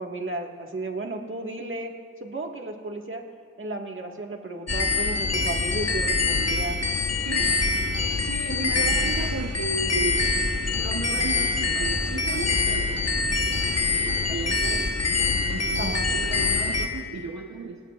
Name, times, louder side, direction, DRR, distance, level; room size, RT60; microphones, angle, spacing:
voice 1, 0.0-1.9 2.2-3.2 3.6-6.8 15.8-16.1, right 2 dB, 45° right, 1 dB, 1.7 m, -33 dB
sound 1, 4.7-16.9, left 4 dB, 55° left, 1.3 m, -25 dB
voice 2, 7.2-7.6 8.2-10.3 10.7-13.3 13.8-14.9 15.5-17.8, right 3 dB, 70° right, 1 dB, 1.0 m, -34 dB
29.5 x 17.0 x 2.5 m, 2.1 s
wide cardioid pair, 70°, 29 cm